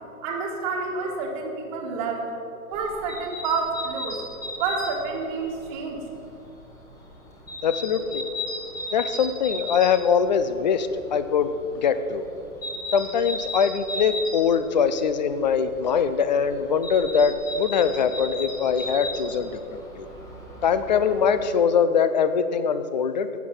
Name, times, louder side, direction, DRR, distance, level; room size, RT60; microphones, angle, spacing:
voice 1, 0.2-2.3 2.7-4.2 4.6-6.0, right 4 dB, 25° right, -2 dB, 1.6 m, -29 dB
sound 1, 2.7-21.5, left 1 dB, 10° left, 1.1 m, -37 dB
voice 2, 7.6-8.2 8.9-11.5 11.8-12.2 12.9-19.5 20.0-20.1 20.6-23.3, left 6 dB, 30° left, 11 dB, 0.5 m, -22 dB
12.0 x 8.1 x 7.2 m, 2.8 s
hypercardioid pair, 145°, 44 cm